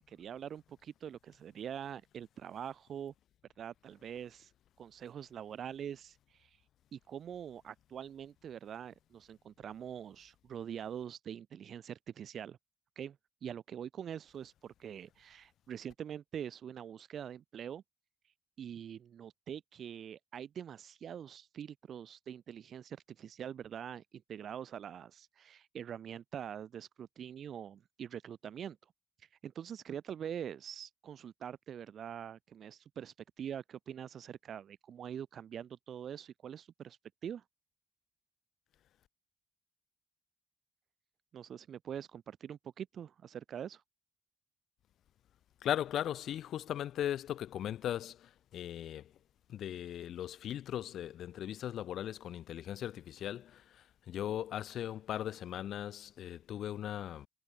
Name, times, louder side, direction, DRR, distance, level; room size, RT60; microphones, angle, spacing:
voice 1, 0.1-3.1 3.6-4.5 4.8-6.6 6.9-12.6 13.0-17.8 18.6-28.8 29.4-37.4 41.3-43.8, right 9 dB, 70° right, 0.6 m, -44 dB
voice 2, 45.6-49.1 49.5-57.3, left 11 dB, 90° left, 0.4 m, -38 dB
cardioid pair, 100°, 0 cm